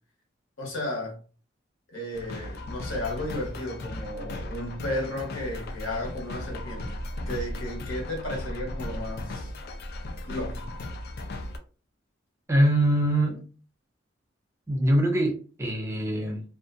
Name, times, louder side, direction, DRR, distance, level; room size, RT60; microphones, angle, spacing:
voice 1, 0.6-1.2 1.9-7.0 7.3-9.5 10.3-10.7, left 1 dB, 80° left, 1.1 m, -34 dB
sound 1, 2.1-11.6, left 1 dB, 55° left, 0.4 m, -36 dB
voice 2, 12.5-13.4 14.7-16.4, right 1 dB, 15° right, 0.5 m, -23 dB
2.5 x 2.2 x 2.5 m
head